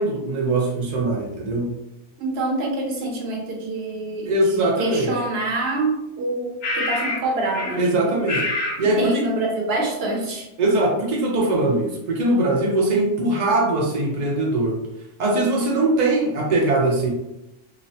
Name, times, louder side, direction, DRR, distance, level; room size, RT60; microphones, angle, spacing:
voice 1, 0.0-1.7 4.2-5.2 7.8-8.4 8.8-9.3 10.6-14.8 15.2-17.1, right 2 dB, 85° right, -2 dB, 0.3 m, -21 dB
voice 2, 2.2-8.3 9.0-10.5, right 2 dB, 65° right, 0 dB, 0.7 m, -26 dB
sound 1, 5.2-5.3 6.6-7.3 7.5-7.8 8.3-8.8, left 2 dB, 90° left, 1.1 m, -26 dB
2.9 x 2.0 x 2.6 m, 0.90 s
omnidirectional pair, 1.3 m